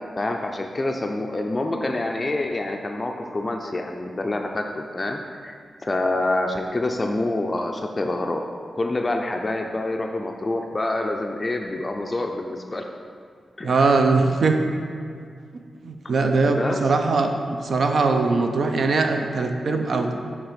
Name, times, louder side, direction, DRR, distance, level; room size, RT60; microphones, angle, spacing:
voice 1, 0.2-5.5 5.8-8.4 8.7-12.8 13.6-13.7 16.4-16.8, left 2 dB, 30° left, 3 dB, 0.4 m, -26 dB
voice 2, 13.6-14.6 15.8-17.3 17.6-20.1, right 3 dB, 65° right, 5 dB, 0.5 m, -21 dB
7.2 x 3.4 x 5.1 m, 2.2 s
cardioid pair, 90°, 0 cm